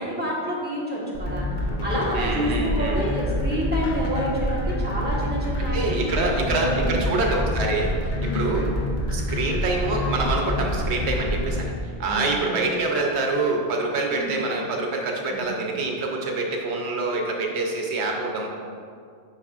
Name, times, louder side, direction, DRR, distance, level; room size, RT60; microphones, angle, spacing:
voice 1, 0.0-1.4 1.8-6.3 6.6-6.9 8.2-8.5 12.0-12.5 14.1-14.3 15.3-15.4, equal, 10° right, -7 dB, 1.3 m, -28 dB
sound 1, 1.1-11.6, left 1 dB, 50° left, 1.1 m, -27 dB
voice 2, 2.1-3.1 5.6-8.7 9.1-18.5, right 3 dB, 85° right, 1 dB, 1.0 m, -26 dB
8.5 x 5.4 x 2.4 m, 2.2 s
omnidirectional pair, 1.1 m